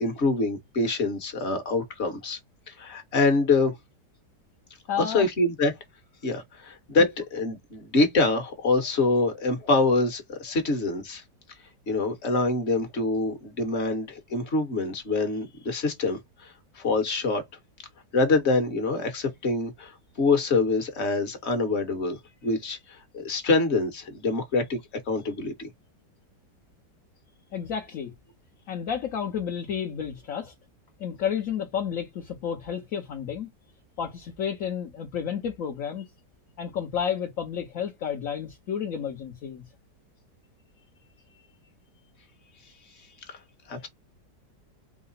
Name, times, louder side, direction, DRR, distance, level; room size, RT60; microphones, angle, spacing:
voice 1, 0.0-2.4 2.7-3.7 5.0-5.7 6.2-11.2 11.9-17.4 18.1-24.8 25.1-25.7 43.3-43.4 43.7-43.9, left 3 dB, 40° left, 1.4 m, -25 dB
voice 2, 4.9-5.3 7.0-7.1 27.5-28.1 28.7-30.5 31.0-33.5 34.0-36.0 36.6-39.7, left 8 dB, 60° left, 1.1 m, -31 dB
4.8 x 2.1 x 4.0 m
omnidirectional pair, 1.9 m